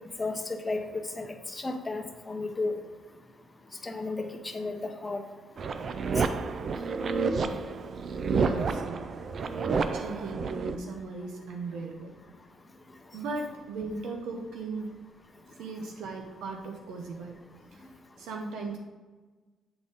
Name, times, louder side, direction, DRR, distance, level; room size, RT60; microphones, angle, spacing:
voice 1, 0.2-0.8 1.2-2.8 3.8-5.2 6.2-6.3, left 3 dB, 20° left, 3 dB, 0.8 m, -33 dB
sound 1, 5.6-10.8, right 4 dB, 50° right, 0.4 m, -30 dB
voice 2, 8.3-9.1 9.9-12.1 13.1-14.9 15.6-17.3 17.7-17.8 18.2-18.8, right 3 dB, 85° right, 2 dB, 0.8 m, -37 dB
8.0 x 3.9 x 3.6 m, 1.3 s
cardioid pair, 90°, 0 cm